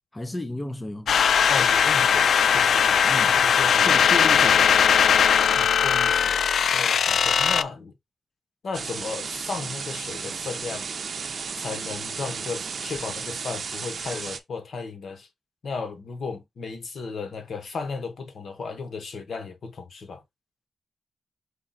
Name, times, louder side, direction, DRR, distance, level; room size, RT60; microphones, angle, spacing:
voice 1, 0.1-1.1 3.0-3.4 3.9-4.6, left 2 dB, 15° left, 0.7 m, -32 dB
sound 1, 1.1-7.6, left 7 dB, 85° left, 0.3 m, -19 dB
voice 2, 1.5-4.0 4.3-4.7 5.6-6.4 6.7-7.9 8.6-10.9 11.6-15.3 15.6-20.2, left 4 dB, 65° left, 1.1 m, -35 dB
sound 2, 8.7-14.4, right 5 dB, 60° right, 0.6 m, -34 dB
5.2 x 2.3 x 4.0 m
wide cardioid pair, 115°, 0 cm